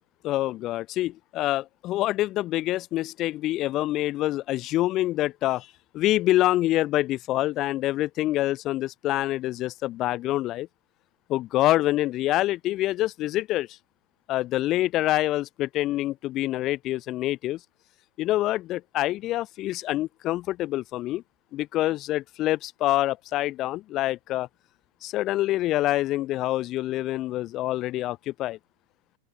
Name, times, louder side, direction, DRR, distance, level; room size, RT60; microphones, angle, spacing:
voice 1, 0.2-5.7 5.9-10.7 11.3-13.7 14.3-17.6 18.2-21.2 21.5-24.5 25.0-28.6, left 15 dB, 35° left, 0.4 m, -26 dB
figure-of-eight pair, 90°, 0 cm